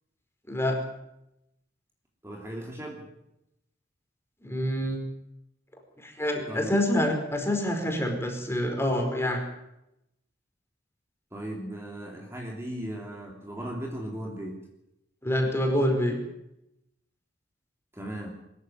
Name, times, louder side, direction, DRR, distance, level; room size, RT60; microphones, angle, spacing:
voice 1, 0.5-0.8 4.4-5.0 6.0-9.4 15.2-16.2, left 1 dB, 15° left, 3 dB, 4.9 m, -26 dB
voice 2, 2.2-3.1 6.5-6.9 11.3-14.7 17.9-18.3, right 1 dB, 15° right, 0 dB, 3.0 m, -37 dB
23.0 x 14.0 x 9.5 m, 0.85 s
head